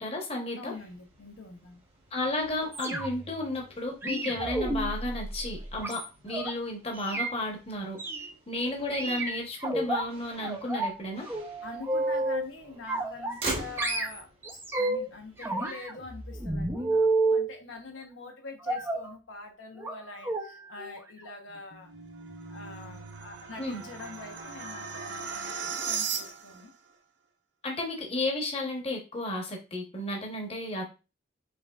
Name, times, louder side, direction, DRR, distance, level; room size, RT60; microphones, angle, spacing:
voice 1, 0.0-0.7 2.1-8.0 8.5-11.3 23.6-23.8 27.6-30.8, left 2 dB, 30° left, 1 dB, 0.9 m, -33 dB
voice 2, 0.5-1.8 11.6-14.3 14.7-21.9 22.5-26.7, left 3 dB, 80° left, 3 dB, 0.9 m, -45 dB
Motor vehicle (road), 0.6-16.4, right 2 dB, 30° right, 1.0 m, -45 dB
sound 1, 2.7-3.3 4.0-6.5 7.0-7.3 8.0-8.3 8.9-10.0 10.4-11.0 11.3-12.5 12.9-13.5 13.8-15.1 15.4-17.5 18.7-19.1 19.8-20.0 20.2-20.5 20.8-21.0 21.3-21.4, right 2 dB, 10° right, 0.5 m, -30 dB
sound 2, 21.5-26.7, right 6 dB, 65° right, 0.7 m, -37 dB
5.2 x 3.2 x 2.3 m, 0.30 s
head